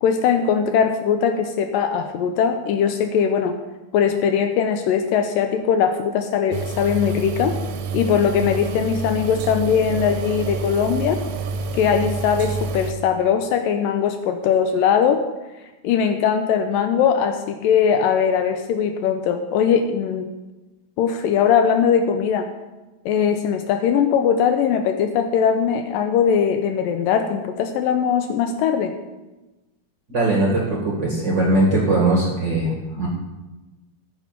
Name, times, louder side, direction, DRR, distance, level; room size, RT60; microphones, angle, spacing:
voice 1, 0.0-3.6 3.9-7.6 7.9-11.2 11.8-15.2 15.8-20.3 21.0-22.5 23.1-29.0, left 7 dB, 80° left, 7 dB, 2.1 m, -20 dB
sound 1, 6.5-12.9, right 4 dB, 75° right, 2.1 m, -28 dB
voice 2, 30.1-33.1, right 2 dB, 45° right, -3 dB, 1.6 m, -20 dB
14.0 x 6.0 x 5.7 m, 1.1 s
omnidirectional pair, 4.3 m